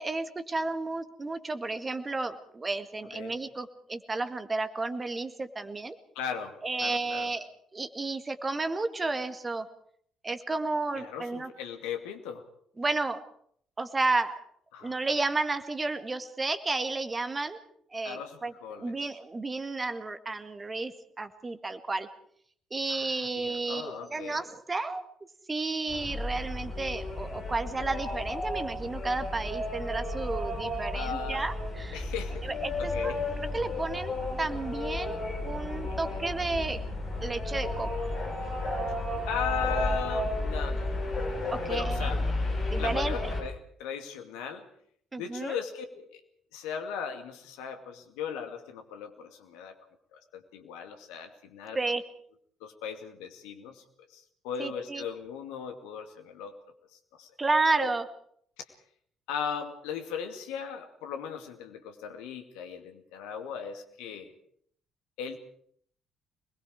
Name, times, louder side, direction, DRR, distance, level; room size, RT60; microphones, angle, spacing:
voice 1, 0.0-5.9 6.6-7.5 7.7-9.7 10.2-11.5 12.8-13.2 13.8-14.4 14.8-17.6 17.9-22.1 22.7-25.0 25.5-32.0 32.4-33.2 33.5-36.8 37.2-38.1 41.5-42.1 42.7-43.3 45.1-45.6 51.8-52.0 54.6-55.0 57.4-58.0, right 3 dB, 25° right, 9 dB, 2.0 m, -32 dB
voice 2, 6.2-7.3 11.0-12.4 14.7-15.0 18.0-18.9 22.9-24.4 30.9-31.5 31.9-32.5 32.8-33.2 35.9-36.2 39.3-41.3 41.6-42.2 42.8-44.7 45.2-46.2 46.5-49.7 50.1-51.8 52.6-53.8 54.1-56.5 56.9-57.3 57.7-57.9 59.3-64.3 65.2-65.4, left 7 dB, 65° left, 5 dB, 2.3 m, -38 dB
sound 1, 25.9-43.4, left 2 dB, 45° left, 6.4 m, -33 dB
26.0 x 21.0 x 4.9 m, 0.63 s
figure-of-eight pair, 45°, 0 cm